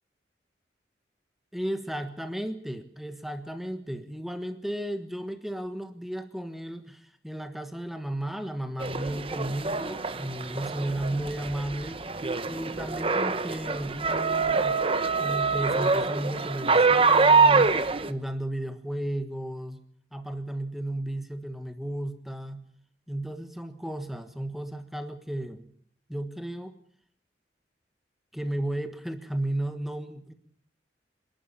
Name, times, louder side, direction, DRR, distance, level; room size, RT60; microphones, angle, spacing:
voice 1, 1.5-12.0 12.5-14.8 15.2-17.8 18.1-19.8 20.1-22.6 23.1-25.7 26.1-26.7 28.3-30.3, right 1 dB, ahead, 7 dB, 1.4 m, -34 dB
sound 1, 8.8-18.1, right 4 dB, 30° right, 1.0 m, -25 dB
26.5 x 11.5 x 8.6 m, 0.62 s
head